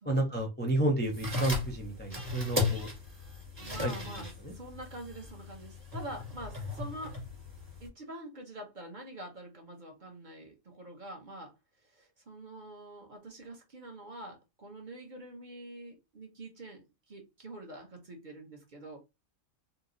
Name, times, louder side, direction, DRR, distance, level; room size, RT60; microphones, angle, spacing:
voice 1, 0.1-2.9 3.8-3.9 4.4-4.5, right 1 dB, 15° left, 0 dB, 0.4 m, -30 dB
sound 1, 1.0-7.9, left 3 dB, 20° right, 1.3 m, -37 dB
voice 2, 3.6-7.2 7.8-11.5 11.8-19.0, right 1 dB, 40° right, 1 dB, 0.9 m, -46 dB
2.8 x 2.1 x 3.7 m, 0.24 s
omnidirectional pair, 1.4 m